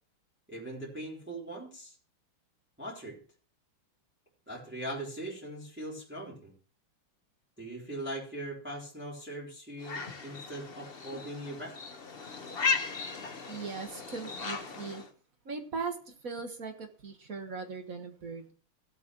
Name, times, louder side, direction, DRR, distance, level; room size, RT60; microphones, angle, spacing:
voice 1, 0.5-1.9 2.8-3.2 4.5-6.5 7.6-11.7, right 1 dB, 5° right, -5 dB, 3.5 m, -40 dB
sound 1, 9.8-15.1, left 5 dB, 35° left, 1.0 m, -36 dB
voice 2, 13.5-15.0 15.4-18.5, right 4 dB, 45° right, 6 dB, 1.6 m, -39 dB
17.0 x 8.3 x 3.0 m, 0.41 s
omnidirectional pair, 2.3 m